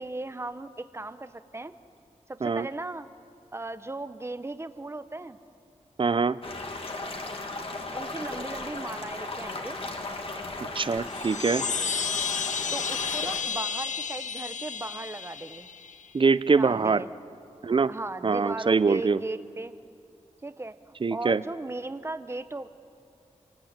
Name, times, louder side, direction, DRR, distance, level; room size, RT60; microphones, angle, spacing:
voice 1, 0.0-1.7 2.3-3.1 3.5-5.4 7.9-9.8 12.7-15.7 16.6-17.1 17.9-19.7 20.4-22.7, right 2 dB, 20° right, 11 dB, 0.9 m, -37 dB
voice 2, 6.0-6.4 10.8-11.6 16.1-17.0 17.6-17.9 18.2-19.2 21.0-21.4, right 4 dB, 40° right, 16 dB, 0.6 m, -23 dB
sound 1, 6.4-13.4, left 2 dB, 50° left, 2.4 m, -36 dB
sound 2, 11.0-16.1, left 6 dB, 75° left, 1.0 m, -32 dB
28.0 x 20.5 x 8.9 m, 2.5 s
wide cardioid pair, 115°, 13 cm